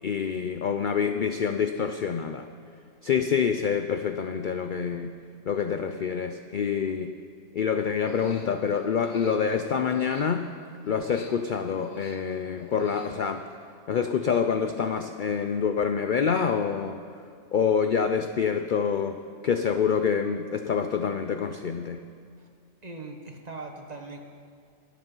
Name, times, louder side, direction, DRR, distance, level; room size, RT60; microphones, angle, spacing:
voice 1, 0.0-2.5 3.0-5.2 5.5-7.1 7.5-10.5 10.9-13.4 13.9-17.0 17.5-22.0, left 6 dB, 55° left, 7 dB, 0.5 m, -26 dB
Human voice, 7.9-10.6 11.0-13.5, left 4 dB, 80° left, 1.4 m, -48 dB
voice 2, 22.8-24.2, right 3 dB, 30° right, 3 dB, 1.3 m, -40 dB
21.5 x 8.4 x 5.5 m, 2.2 s
omnidirectional pair, 1.4 m